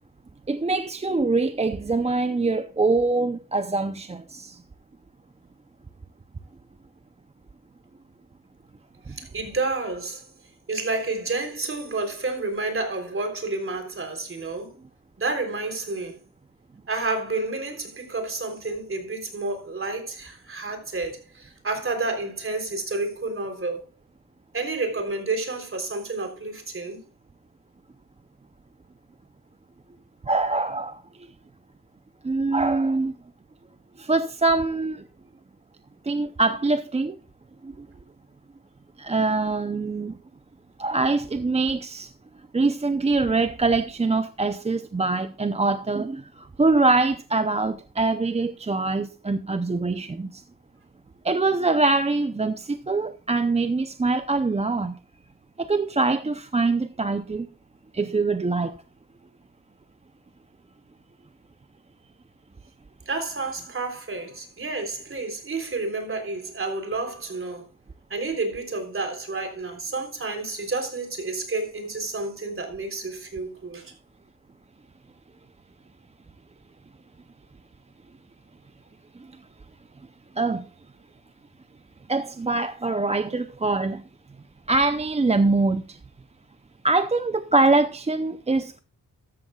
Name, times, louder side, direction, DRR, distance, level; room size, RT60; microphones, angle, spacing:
voice 1, 0.5-4.6 30.3-31.0 32.2-33.1 34.0-35.0 36.0-37.2 37.6-37.9 39.0-40.2 40.8-42.1 42.5-50.4 51.2-54.9 55.6-57.5 57.9-58.7 80.4-80.6 82.1-84.0 84.7-86.0 86.8-88.8, right 3 dB, 20° right, 0.6 m, -24 dB
voice 2, 9.1-10.2 10.7-14.7 15.2-16.1 16.9-23.8 24.5-27.0 63.1-67.6 68.1-73.9, right 3 dB, 35° right, 3.6 m, -30 dB
13.5 x 13.5 x 2.3 m
cardioid pair, 105°, 36 cm